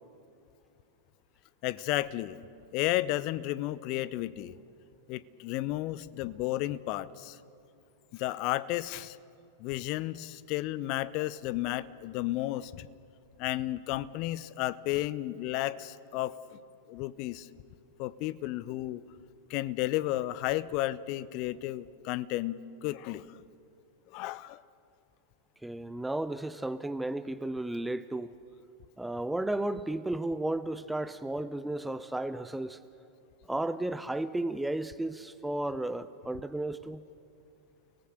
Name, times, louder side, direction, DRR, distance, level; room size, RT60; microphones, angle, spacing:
voice 1, 1.6-2.4 2.7-4.6 5.1-7.4 8.1-9.2 9.6-12.9 13.4-16.4 16.9-17.5 18.0-19.0 19.5-23.4 24.1-24.6, left 16 dB, 45° left, 18 dB, 0.6 m, -33 dB
voice 2, 25.6-28.3 29.0-32.8 33.5-37.0, right 1 dB, 5° right, 14 dB, 0.5 m, -33 dB
29.5 x 19.0 x 6.7 m, 2.6 s
figure-of-eight pair, 90°, 0 cm